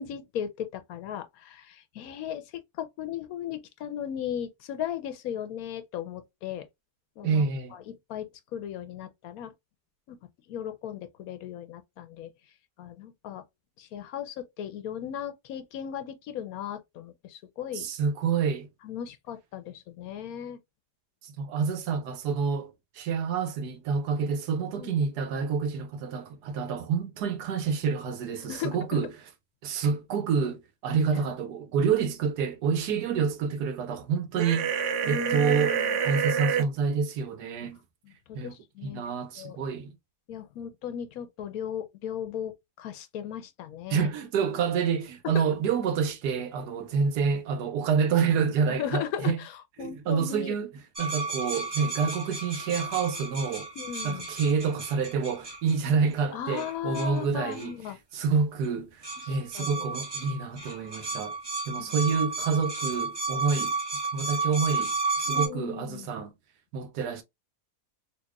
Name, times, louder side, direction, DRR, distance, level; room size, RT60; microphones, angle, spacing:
voice 1, 0.0-2.4 2.8-6.7 7.2-7.4 7.7-7.8 8.1-9.5 10.1-10.2 10.5-12.3 12.8-13.4 13.8-17.9 18.8-20.6 24.8-24.9 28.5-28.8 35.0-36.0 38.0-39.0 39.4-39.6 40.3-42.5 42.8-44.1 45.3-45.5 48.7-50.6 53.8-54.3 56.3-58.0 59.2-59.9 61.8-61.9 65.3-66.1, left 9 dB, 70° left, 1.0 m, -37 dB
voice 2, 7.2-7.7 17.7-18.7 21.3-29.1 29.6-34.7 35.1-35.8 36.0-37.8 38.3-38.6 38.8-39.9 43.9-49.4 49.8-50.7 51.0-53.7 54.0-57.8 58.1-61.3 61.7-63.7 64.1-64.9 65.2-66.3 66.7-67.2, right 6 dB, 90° right, 1.3 m, -28 dB
sound 1, 34.4-36.6, right 7 dB, 65° right, 0.8 m, -27 dB
sound 2, 51.0-55.8 56.6-57.2 57.5-57.7 58.6-58.7 59.0-65.5, right 3 dB, 20° right, 0.9 m, -33 dB
4.1 x 2.8 x 2.2 m
omnidirectional pair, 1.7 m